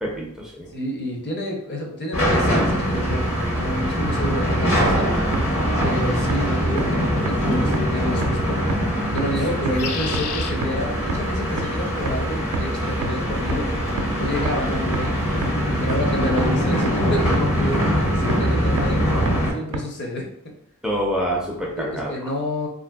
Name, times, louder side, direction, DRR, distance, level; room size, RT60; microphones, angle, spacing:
voice 1, 0.0-0.7 5.7-5.8 17.8-17.9 20.8-22.1, equal, ahead, -3 dB, 0.4 m, -26 dB
voice 2, 0.7-5.1 5.8-8.6 9.1-17.9 18.2-19.0 19.5-20.5 21.8-22.7, equal, 50° left, 0 dB, 0.6 m, -29 dB
sound 1, 2.1-19.5, equal, 70° left, 1.0 m, -22 dB
sound 2, 4.9-5.0 5.3-5.4 5.8-5.9 6.3-6.4 6.8-6.9 7.3-7.4 7.7-7.8 8.2-8.3 8.7-8.8 9.2-9.3 9.7-9.8 10.1-10.2 10.6-10.7 11.1-11.2 11.6-11.7 12.1-12.2 12.5-12.6 13.0-13.1 13.5-13.6 14.0-14.1 14.5-14.6 14.9-15.0 15.4-15.5 15.9-16.0 16.4-16.5 16.9-17.0 17.3-17.4 17.8-17.9 18.3-18.4 18.8-18.9 19.3-19.4 19.7-19.8, right 4 dB, 80° right, 0.4 m, -26 dB
sound 3, 7.4-7.8 9.5-10.5 11.5-11.9, left 7 dB, 85° left, 0.3 m, -33 dB
3.2 x 2.5 x 2.2 m, 0.72 s
head